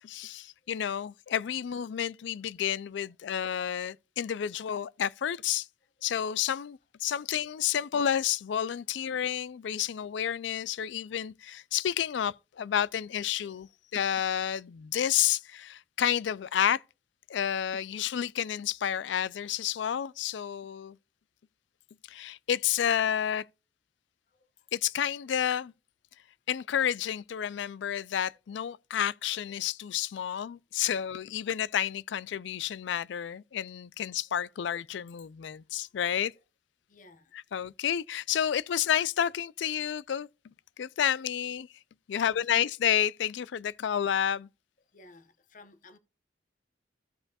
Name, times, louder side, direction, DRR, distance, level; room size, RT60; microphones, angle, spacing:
voice 1, 0.0-5.7 6.0-16.8 17.3-21.0 22.1-23.4 24.7-25.7 26.5-36.3 37.3-40.3 40.8-41.7 42.1-44.5, left 9 dB, 70° left, 0.3 m, -30 dB
voice 2, 36.9-37.3 42.1-42.4 44.9-46.0, left 3 dB, 45° left, 0.8 m, -54 dB
15.5 x 5.3 x 2.3 m
head